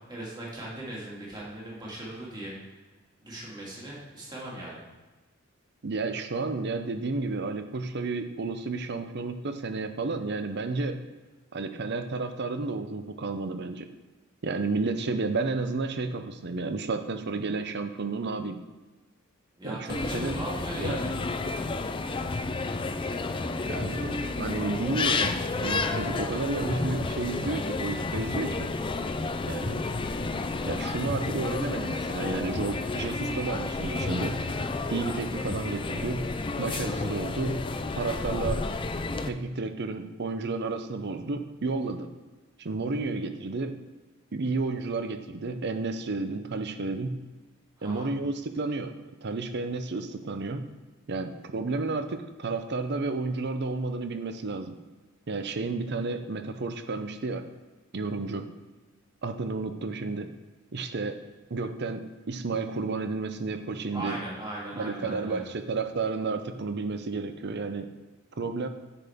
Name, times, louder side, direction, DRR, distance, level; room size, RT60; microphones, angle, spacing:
voice 1, 0.1-2.7 3.2-4.8 19.6-21.1 47.8-48.1 63.9-65.5, right 1 dB, 20° right, -5 dB, 2.2 m, -38 dB
voice 2, 5.8-11.0 11.5-13.9 14.4-18.6 19.6-20.3 20.8-21.0 23.6-28.7 29.4-29.8 30.7-34.4 34.9-36.3 36.6-37.6 37.9-38.6 39.2-42.1 42.6-43.8 44.3-47.2 47.8-48.9 49.2-50.6 51.1-54.8 55.3-57.4 57.9-58.5 59.2-60.3 60.7-61.2 61.5-64.2 64.8-67.9 68.4-68.7, right 3 dB, 55° right, 8 dB, 0.7 m, -31 dB
sound 1, 19.9-39.3, left 3 dB, 25° left, 0.4 m, -31 dB
9.9 x 5.8 x 3.6 m, 1.2 s
head